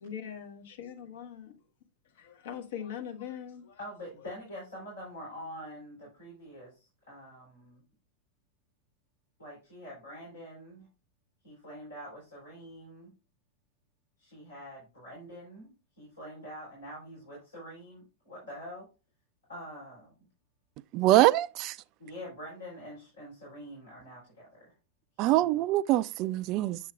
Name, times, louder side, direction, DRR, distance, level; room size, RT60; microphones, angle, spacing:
voice 1, 0.0-1.5 2.1-3.8, left 9 dB, 55° left, 1.3 m, -41 dB
voice 2, 3.8-7.8 9.4-10.9 11.4-13.1 14.2-15.7 16.0-18.9 19.5-20.1 22.0-24.7 25.2-25.5, equal, 75° left, 4.0 m, -45 dB
voice 3, 20.9-21.8 25.2-26.8, right 15 dB, 40° right, 0.3 m, -24 dB
7.8 x 7.4 x 2.4 m
figure-of-eight pair, 90°, 0 cm